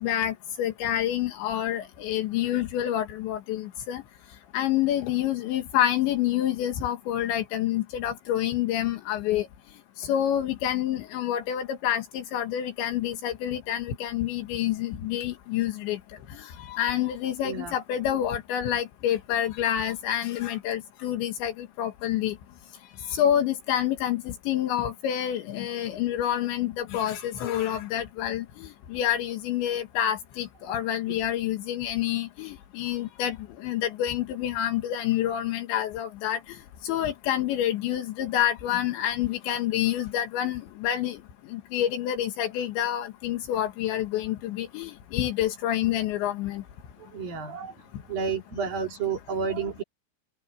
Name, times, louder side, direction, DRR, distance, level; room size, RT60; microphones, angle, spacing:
voice 1, 0.0-4.0 4.5-9.5 10.0-16.0 16.7-22.3 23.2-33.4 33.6-36.4 36.8-41.2 41.5-46.6, left 11 dB, 80° left, 3.9 m, -28 dB
voice 2, 17.4-17.7 30.7-30.8 31.1-31.2 47.0-47.7 48.1-49.8, right 6 dB, 55° right, 5.3 m, -31 dB
open air
omnidirectional pair, 5.2 m